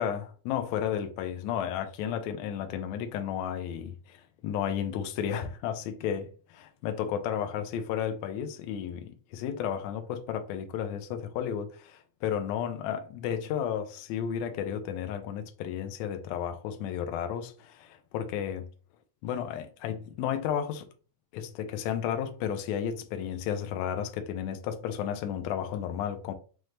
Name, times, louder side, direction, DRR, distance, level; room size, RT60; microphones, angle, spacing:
voice 1, 0.0-18.7 19.2-20.9 21.3-26.3, left 9 dB, 90° left, 1.6 m, -33 dB
5.8 x 2.1 x 3.1 m
omnidirectional pair, 3.8 m